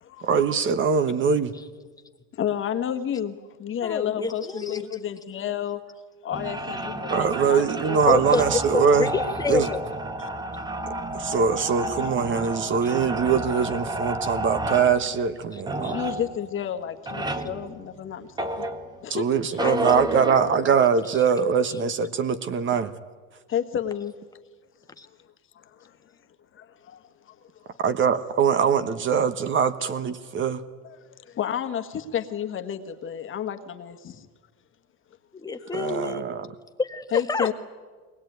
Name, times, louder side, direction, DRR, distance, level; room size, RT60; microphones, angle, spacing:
voice 1, 0.2-1.5 7.1-9.1 9.5-9.7 11.1-16.0 19.1-22.9 27.8-30.6 35.7-36.5, right 6 dB, 30° right, 12 dB, 1.1 m, -22 dB
voice 2, 2.3-5.8 6.2-8.0 10.2-10.3 15.9-18.6 19.0-19.3 23.5-24.1 25.5-25.9 26.5-27.3 27.6-27.8 30.8-34.3 35.6-35.8 37.1-37.5, left 9 dB, 35° left, 8 dB, 1.5 m, -31 dB
voice 3, 3.8-5.0 8.1-9.8 12.8-12.9 15.5-15.9 19.6-20.5 21.7-21.8 25.0-25.1 35.3-36.3 36.8-37.5, left 4 dB, 10° left, 7 dB, 1.4 m, -28 dB
sound 1, 6.3-19.2 19.6-20.9, right 1 dB, 10° right, 1.4 m, -31 dB
22.5 x 20.0 x 9.3 m, 1.4 s
supercardioid pair, 130°, 37 cm